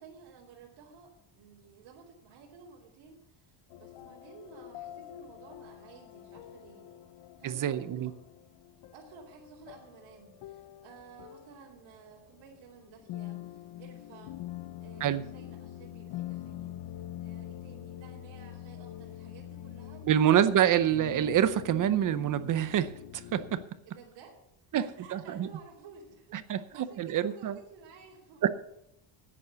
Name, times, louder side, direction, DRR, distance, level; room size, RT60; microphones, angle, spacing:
voice 1, 0.0-6.9 7.4-8.1 8.9-20.7 23.8-24.3 24.8-28.5, right 5 dB, 90° right, -4 dB, 3.2 m, -54 dB
sound 1, 3.7-23.7, left 13 dB, 55° left, 0.7 m, -45 dB
voice 2, 7.4-8.1 15.0-15.2 20.0-23.6 24.7-24.8 25.1-25.5 26.3-27.6 28.4-28.5, right 10 dB, 40° right, 13 dB, 0.7 m, -26 dB
11.0 x 9.6 x 6.9 m, 0.79 s
cardioid pair, 170°, 49 cm